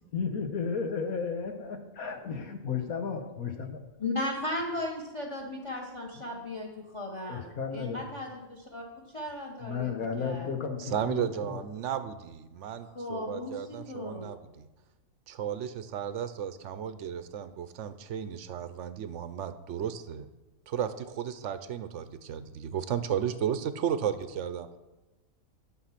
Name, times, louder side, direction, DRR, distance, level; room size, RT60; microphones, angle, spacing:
voice 1, 0.1-3.8 6.2-6.3 7.3-8.0 9.6-11.6, left 5 dB, 80° left, 5 dB, 1.6 m, -33 dB
voice 2, 4.0-10.5 12.8-14.3, left 2 dB, 25° left, 0 dB, 1.1 m, -36 dB
voice 3, 10.8-14.7 15.3-20.3 20.7-24.7, right 9 dB, 65° right, 11 dB, 0.9 m, -34 dB
11.5 x 6.2 x 5.8 m, 1.1 s
omnidirectional pair, 1.5 m